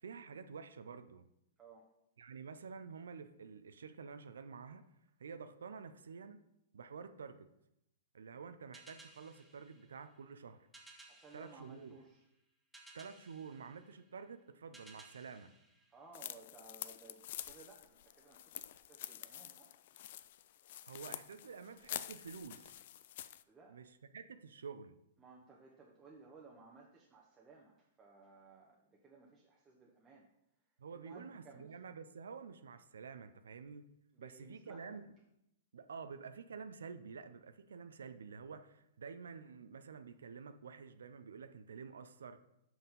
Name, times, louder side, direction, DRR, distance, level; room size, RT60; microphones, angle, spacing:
voice 1, 0.0-1.3 2.2-4.8 5.2-6.4 6.7-7.5 8.1-10.7 11.3-12.0 12.9-15.5 20.8-22.7 23.7-25.0 30.8-33.9 34.2-35.0 35.7-42.4, right 5 dB, 75° right, 10 dB, 0.5 m, -49 dB
voice 2, 1.6-1.9 11.1-12.3 15.9-19.8 23.5-23.8 25.2-30.3 30.9-31.7 34.1-35.0, right 3 dB, 20° right, -2 dB, 1.0 m, -59 dB
sound 1, 8.7-16.6, right 2 dB, ahead, 1.3 m, -61 dB
sound 2, 16.1-23.4, left 12 dB, 55° left, 0.4 m, -48 dB
5.9 x 5.5 x 5.3 m, 0.83 s
hypercardioid pair, 120°, 0 cm